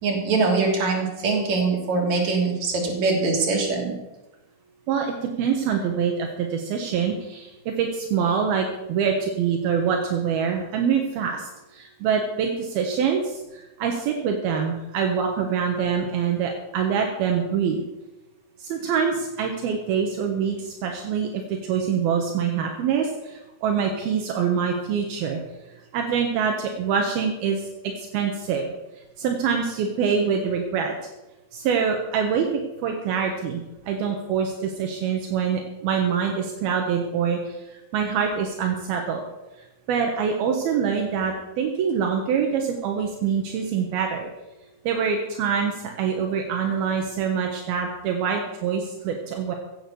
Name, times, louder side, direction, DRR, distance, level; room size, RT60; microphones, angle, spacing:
voice 1, 0.0-3.9, right 3 dB, 50° right, 0 dB, 4.1 m, -23 dB
voice 2, 4.9-17.8 18.6-25.4 25.9-28.7 29.2-30.9 31.5-39.2 39.6-44.3 44.8-49.5, right 6 dB, 75° right, 2 dB, 3.1 m, -25 dB
16.0 x 8.7 x 6.9 m, 1.0 s
omnidirectional pair, 4.4 m